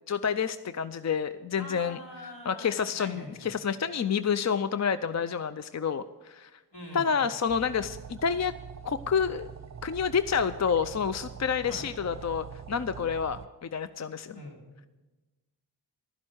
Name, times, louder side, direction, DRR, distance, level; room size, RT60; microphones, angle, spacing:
voice 1, 0.1-2.0 2.5-6.5 6.9-8.5 8.8-9.5 9.8-14.4, left 6 dB, 40° left, 12 dB, 0.5 m, -29 dB
voice 2, 1.5-3.5 6.7-7.2 11.7-11.9 14.3-14.6, left 1 dB, 75° left, -2 dB, 3.6 m, -43 dB
sound 1, 7.5-13.5, right 7 dB, 40° right, 0.7 m, -44 dB
12.0 x 10.5 x 6.3 m, 1.2 s
cardioid pair, 40°, 42 cm